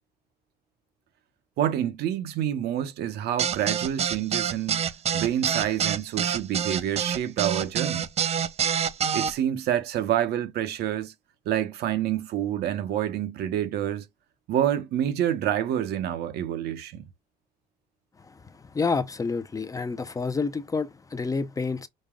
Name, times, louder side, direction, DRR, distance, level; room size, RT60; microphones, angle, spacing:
voice 1, 1.6-4.8 5.1-8.1 9.1-11.1 11.5-14.0 14.5-17.1, right 11 dB, 75° right, 0.9 m, -27 dB
sound 1, 3.4-9.3, right 8 dB, 40° right, 0.5 m, -26 dB
voice 2, 18.7-21.9, left 4 dB, 20° left, 0.5 m, -28 dB
5.3 x 2.2 x 3.7 m
cardioid pair, 110°, 17 cm